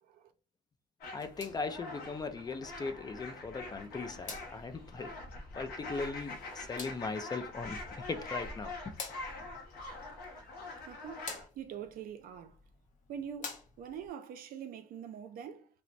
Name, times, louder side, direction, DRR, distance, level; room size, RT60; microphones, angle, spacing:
voice 1, 0.0-0.3 10.8-12.6 13.1-15.7, right 8 dB, 70° right, 0.4 m, -44 dB
sound 1, 1.0-11.5, left 2 dB, 90° left, 0.7 m, -44 dB
sound 2, 1.0-14.1, left 4 dB, 55° left, 0.7 m, -51 dB
voice 2, 1.1-5.2 5.5-8.9, left 4 dB, 25° left, 0.4 m, -39 dB
2.9 x 2.0 x 2.5 m
cardioid pair, 90°, 15 cm